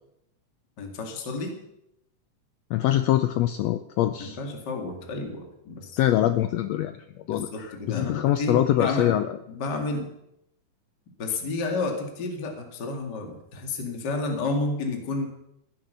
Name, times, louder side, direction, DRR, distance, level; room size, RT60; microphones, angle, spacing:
voice 1, 0.8-1.5 4.2-6.0 7.3-9.2 9.5-10.1 11.2-15.3, left 3 dB, 35° left, 3 dB, 2.4 m, -31 dB
voice 2, 2.7-4.4 6.0-7.0 7.3-9.3, left 13 dB, 85° left, 10 dB, 1.5 m, -24 dB
16.0 x 10.5 x 6.8 m, 0.83 s
omnidirectional pair, 3.8 m